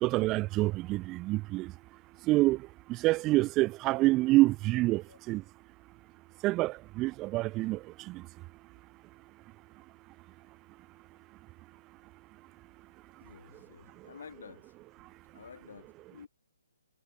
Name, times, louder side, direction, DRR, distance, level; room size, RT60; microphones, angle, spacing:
voice 1, 0.0-1.7 2.3-2.6 3.0-5.0 5.3-5.4 6.4-7.8 8.1-8.2, right 19 dB, 20° right, 0.3 m, -26 dB
voice 2, 13.2-14.7 15.3-16.3, left 6 dB, 65° left, 5.7 m, -51 dB
hypercardioid pair, 150°, 0 cm